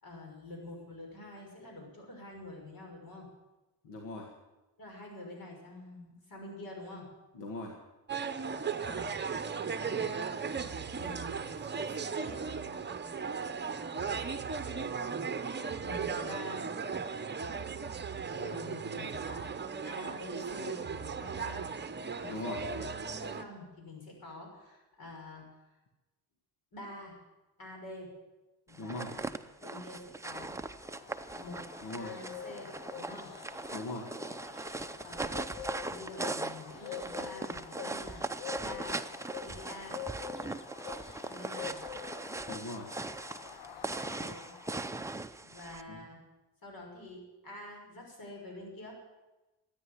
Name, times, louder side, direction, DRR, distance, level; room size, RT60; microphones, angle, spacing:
voice 1, 0.0-3.3 4.8-7.1 8.8-10.3 10.9-12.4 15.8-16.7 18.3-21.6 22.2-25.4 26.7-27.2 27.6-28.1 28.7-29.3 29.6-30.5 31.4-33.3 35.0-35.4 35.8-38.2 38.6-39.0 39.4-40.0 41.2-41.8 44.2-44.5 45.4-46.2 46.6-48.9, left 2 dB, 55° left, 0 dB, 6.4 m, -47 dB
voice 2, 3.8-4.3 7.3-7.8 22.3-22.6 28.8-29.1 31.8-32.1 33.7-34.1 42.5-42.9 45.9-46.0, left 2 dB, 90° left, 1 dB, 2.1 m, -40 dB
sound 1, 8.1-23.4, right 5 dB, 25° right, 0.9 m, -36 dB
sound 2, 28.7-45.8, right 2 dB, 5° right, 0.6 m, -40 dB
sound 3, 30.4-45.0, left 8 dB, 70° left, 1.2 m, -46 dB
13.0 x 9.9 x 9.8 m, 1.1 s
cardioid pair, 105°, 41 cm